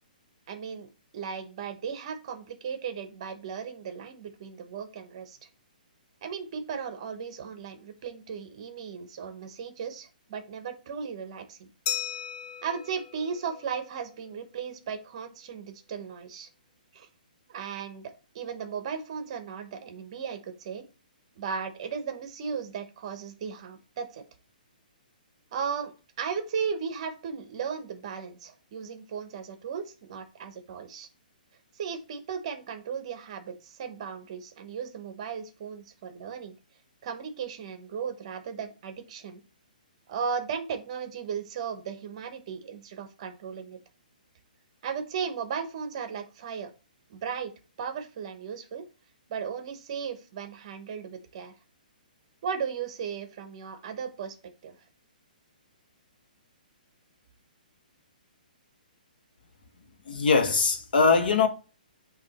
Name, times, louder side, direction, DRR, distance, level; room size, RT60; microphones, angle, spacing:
voice 1, 0.5-5.4 6.2-11.7 12.6-16.5 16.9-17.1 17.5-20.8 21.4-24.2 25.5-25.9 26.2-31.1 31.7-36.6 37.0-39.4 40.1-43.8 44.8-46.7 47.1-47.5 47.8-48.9 49.3-51.5 52.4-54.4 54.6-54.7, right 6 dB, 40° right, 1.0 m, -36 dB
Glass, 11.9-14.3, left 9 dB, 20° left, 0.6 m, -37 dB
voice 2, 60.1-61.5, left 4 dB, 75° left, 1.4 m, -22 dB
8.6 x 2.9 x 4.1 m
hypercardioid pair, 160°, 5 cm